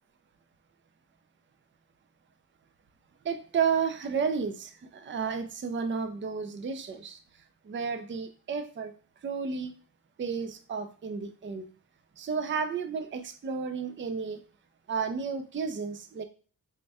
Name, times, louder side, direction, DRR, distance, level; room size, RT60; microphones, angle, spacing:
voice 1, 3.2-7.2 7.6-8.9 9.2-9.7 10.2-11.7 12.2-14.4 14.9-16.2, right 6 dB, 35° right, 8 dB, 0.4 m, -32 dB
3.5 x 2.1 x 4.1 m, 0.40 s
wide cardioid pair, 110°, 36 cm